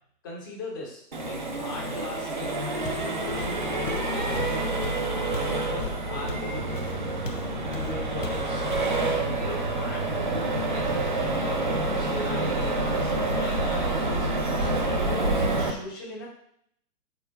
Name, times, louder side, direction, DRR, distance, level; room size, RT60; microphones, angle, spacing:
voice 1, 0.2-4.7 5.3-6.7 7.0-7.3 7.6-8.6 9.3-14.3 14.6-16.3, left 2 dB, 15° left, -2 dB, 0.7 m, -39 dB
Accelerating revving vroom, 1.1-15.7, right 2 dB, 30° right, 0.5 m, -27 dB
Walk footsteps, 2.8-3.1 3.4-7.5 7.7-8.0 8.2-9.0, left 4 dB, 50° left, 0.8 m, -37 dB
4.7 x 4.2 x 5.1 m, 0.68 s
figure-of-eight pair, 130°, 49 cm